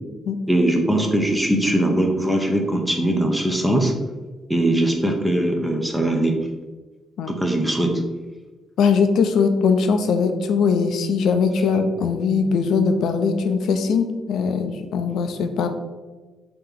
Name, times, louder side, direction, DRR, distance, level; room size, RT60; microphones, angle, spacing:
voice 1, 0.5-3.9 4.5-6.4 7.3-7.9, right 1 dB, 5° right, 2 dB, 0.6 m, -20 dB
voice 2, 8.8-15.7, left 5 dB, 75° left, 8 dB, 0.4 m, -20 dB
3.3 x 2.9 x 3.6 m, 1.3 s
cardioid pair, 90°, 0 cm